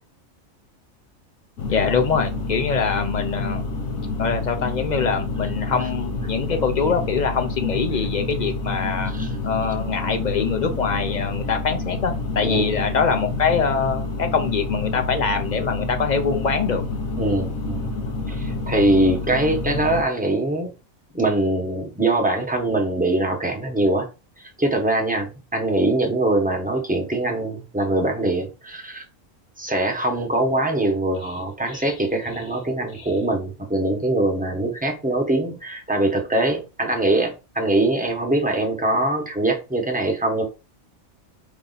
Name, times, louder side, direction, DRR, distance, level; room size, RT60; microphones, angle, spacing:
sound 1, 1.6-20.0, left 2 dB, 85° left, 1.4 m, -28 dB
voice 1, 1.7-3.6 4.2-9.1 9.4-16.8 31.7-31.9 33.0-33.1, left 5 dB, 45° left, 7 dB, 0.6 m, -24 dB
voice 2, 12.4-12.8 17.2-17.9 18.3-20.7 21.1-24.1 24.4-29.0 29.6-40.4, right 2 dB, 5° right, 2 dB, 0.9 m, -23 dB
4.8 x 2.7 x 4.0 m, 0.30 s
omnidirectional pair, 1.4 m